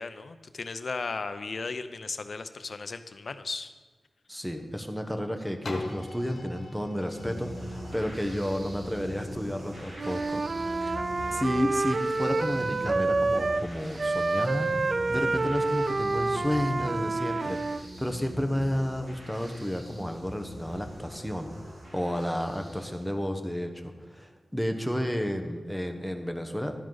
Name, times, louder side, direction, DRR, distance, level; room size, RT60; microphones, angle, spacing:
voice 1, 0.0-3.7 10.8-11.4, left 4 dB, 60° left, 10 dB, 0.6 m, -36 dB
voice 2, 4.3-10.9 11.3-21.5 21.9-26.7, equal, ahead, 6 dB, 1.1 m, -32 dB
sound 1, 5.6-11.4 11.9-12.0, left 2 dB, 90° left, 1.2 m, -43 dB
sound 2, 7.1-23.1, equal, 80° right, 3.7 m, -42 dB
Wind instrument woodwind instrument, 9.9-13.7 14.0-17.8, right 3 dB, 50° right, 0.4 m, -28 dB
12.5 x 10.0 x 4.0 m, 1.3 s
wide cardioid pair, 95°, 0 cm